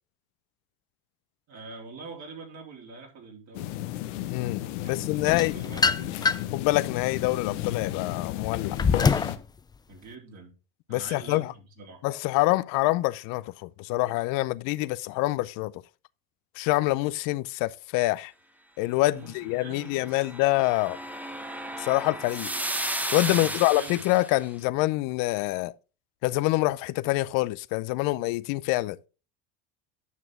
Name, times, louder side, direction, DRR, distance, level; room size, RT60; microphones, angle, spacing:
voice 1, 1.5-3.7 4.8-6.2 9.9-10.5 10.9-12.0 19.1-20.5 23.3-24.0, right 4 dB, 55° right, 3.9 m, -45 dB
sound 1, 3.5-9.4, left 13 dB, 90° left, 1.0 m, -33 dB
voice 2, 4.3-5.5 6.5-8.8 10.9-11.5 12.0-15.7 16.6-18.3 18.8-21.0 21.8-22.5 23.1-25.7 26.2-29.0, left 19 dB, 65° left, 0.6 m, -26 dB
sound 2, 5.3-6.6 7.1-9.4, left 5 dB, 10° left, 0.4 m, -25 dB
sound 3, 19.8-24.4, right 1 dB, 5° right, 0.9 m, -34 dB
9.5 x 6.0 x 3.7 m
supercardioid pair, 100°, 36 cm